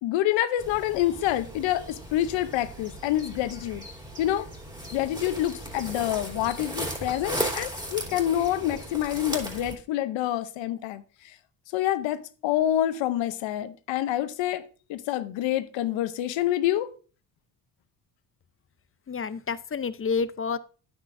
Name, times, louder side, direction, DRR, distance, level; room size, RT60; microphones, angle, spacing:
voice 1, 0.0-3.8 4.2-4.5 4.9-11.0 11.7-14.6 14.9-16.9, left 12 dB, 85° left, 0.8 m, -27 dB
sound 1, 0.6-9.8, right 1 dB, 10° right, 3.3 m, -36 dB
voice 2, 19.1-20.6, left 5 dB, 30° left, 0.6 m, -29 dB
9.6 x 8.0 x 2.6 m
supercardioid pair, 60°, 44 cm